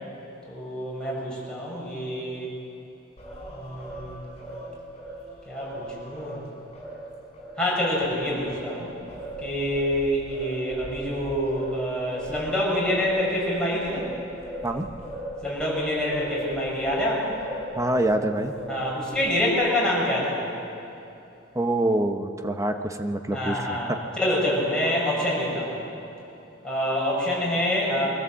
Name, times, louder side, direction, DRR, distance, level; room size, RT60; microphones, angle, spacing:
voice 1, 0.4-2.5 3.5-4.3 5.5-6.4 7.6-8.9 9.4-14.1 15.4-17.4 18.7-20.4 23.3-23.9 24.2-25.7 26.6-28.2, left 1 dB, 5° left, -6 dB, 6.5 m, -26 dB
Singing, 3.2-7.5 7.9-18.2 18.6-19.6, right 1 dB, 30° left, 5.6 m, -38 dB
voice 2, 17.8-18.5 21.5-24.0, right 1 dB, 15° right, 6 dB, 0.9 m, -25 dB
23.0 x 15.0 x 7.6 m, 2.8 s
head